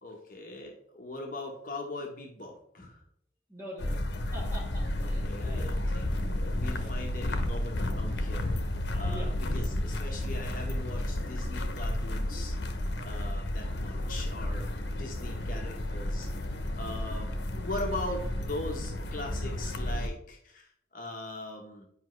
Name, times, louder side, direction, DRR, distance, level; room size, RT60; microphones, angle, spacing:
voice 1, 0.0-3.0 5.0-6.1 6.6-12.5 13.0-16.5 16.7-21.9, left 1 dB, 50° left, 1 dB, 1.1 m, -40 dB
voice 2, 3.5-4.0 4.3-5.7 6.7-6.9 8.9-9.3 15.1-15.4, equal, 15° right, -5 dB, 2.8 m, -45 dB
sound 1, 3.8-20.1, left 1 dB, 80° left, 0.8 m, -32 dB
10.0 x 5.1 x 3.2 m, 0.69 s
head